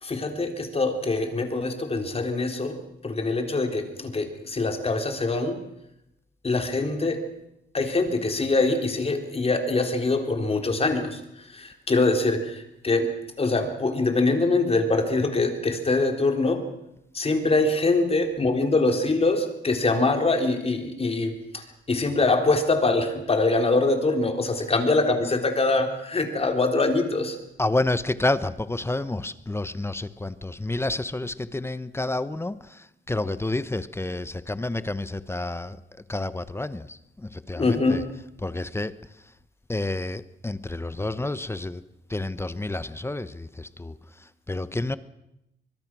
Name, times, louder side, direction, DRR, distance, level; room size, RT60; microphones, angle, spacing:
voice 1, 0.0-2.8 3.0-5.6 6.4-7.2 7.7-11.2 11.5-13.1 13.4-16.6 17.1-21.6 21.9-27.4 37.5-38.0, left 3 dB, 30° left, 5 dB, 3.8 m, -24 dB
voice 2, 27.6-35.8 36.1-38.0 38.4-39.0 39.7-41.8 42.1-45.0, left 2 dB, 10° left, 15 dB, 0.9 m, -29 dB
24.5 x 21.0 x 6.2 m, 0.84 s
cardioid pair, 90°, 20 cm